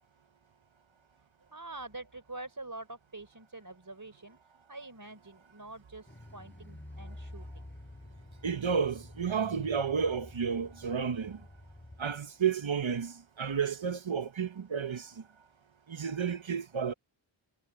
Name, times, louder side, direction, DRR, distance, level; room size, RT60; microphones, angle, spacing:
voice 1, 1.5-4.4 4.7-7.6, right 2 dB, 40° right, 3.7 m, -46 dB
Car, 6.1-12.2 12.5-12.6, left 1 dB, 20° left, 7.5 m, -49 dB
voice 2, 8.4-11.4 12.0-15.1 15.9-16.9, right 6 dB, 70° right, 1.1 m, -31 dB
wide cardioid pair, 55°, 49 cm